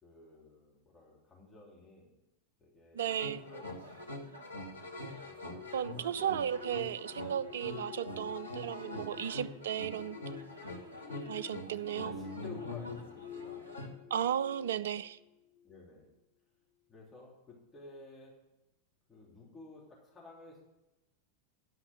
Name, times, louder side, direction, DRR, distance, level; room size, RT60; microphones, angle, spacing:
voice 1, 0.0-2.1 2.6-3.0 3.3-4.0 5.6-6.4 11.9-13.6 15.6-16.1 16.9-18.3 19.1-20.6, left 2 dB, 15° left, 3.2 m, -53 dB
voice 2, 2.9-3.4 5.0-5.1 5.7-10.2 11.3-12.1 14.1-15.2, right 9 dB, 60° right, 0.4 m, -35 dB
sound 1, 3.0-13.9, left 1 dB, 90° left, 1.3 m, -44 dB
sound 2, 5.2-15.1 15.6-15.8, left 10 dB, 40° left, 4.8 m, -50 dB
11.0 x 5.9 x 7.9 m
figure-of-eight pair, 90°, 0 cm